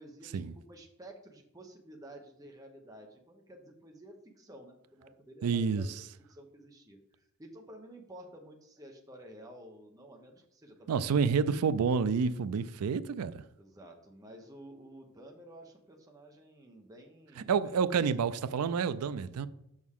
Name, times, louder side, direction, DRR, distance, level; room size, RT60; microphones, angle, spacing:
voice 1, 0.0-5.9 6.3-11.0 13.6-17.7, right 1 dB, 15° right, 0.8 m, -52 dB
voice 2, 5.4-5.9 10.9-13.4 17.5-19.5, right 6 dB, 85° right, 0.4 m, -29 dB
6.4 x 6.0 x 3.6 m
head